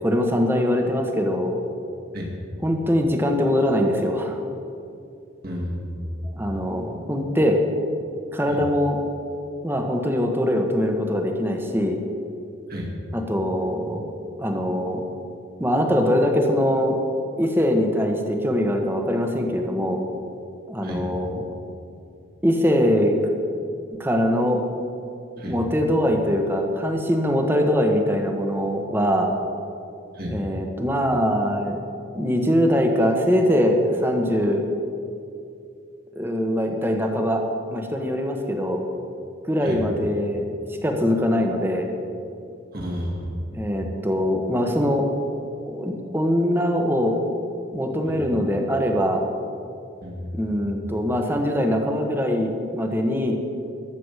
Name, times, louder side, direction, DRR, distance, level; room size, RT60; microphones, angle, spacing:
voice 1, 0.0-1.5 2.6-4.4 6.3-7.6 8.3-9.0 9.6-12.0 13.1-14.0 14.4-15.0 15.6-17.0 17.4-20.0 20.7-21.5 22.4-23.1 24.0-24.6 25.4-29.3 30.3-31.8 32.1-34.7 36.1-37.4 37.7-38.8 39.5-40.5 40.8-41.9 43.5-45.1 45.7-47.2 47.7-49.2 50.3-53.4, equal, 10° right, 3 dB, 1.2 m, -22 dB
voice 2, 5.4-6.0 8.5-8.6 12.7-12.9 20.8-21.0 25.4-25.6 30.1-30.4 39.6-39.8 42.7-43.4 48.0-48.2 50.0-50.4, equal, 50° right, -2 dB, 2.2 m, -31 dB
13.0 x 7.2 x 8.2 m, 2.5 s
head